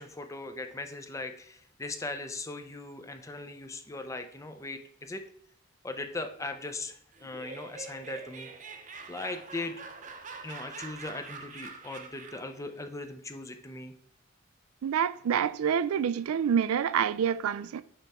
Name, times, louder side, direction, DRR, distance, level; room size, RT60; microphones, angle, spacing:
voice 1, 0.0-5.2 5.8-8.5 9.1-9.8 10.4-13.9, left 2 dB, 15° left, 0.5 m, -39 dB
Laughter, 7.1-12.6, right 4 dB, 35° right, 0.7 m, -45 dB
voice 2, 14.8-17.8, right 8 dB, 90° right, 0.4 m, -27 dB
9.0 x 3.4 x 4.2 m
head